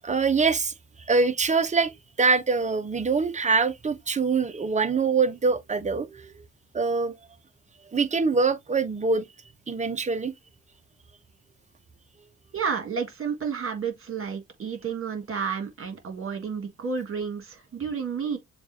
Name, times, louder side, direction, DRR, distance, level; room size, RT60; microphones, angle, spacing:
voice 1, 0.0-0.7 1.1-1.9 2.2-6.3 6.7-7.1 7.9-9.3 9.7-10.3, right 4 dB, 25° right, 0.7 m, -24 dB
voice 2, 12.5-18.4, right 6 dB, 45° right, 1.8 m, -31 dB
7.0 x 2.4 x 2.7 m
cardioid pair, 90°, 30 cm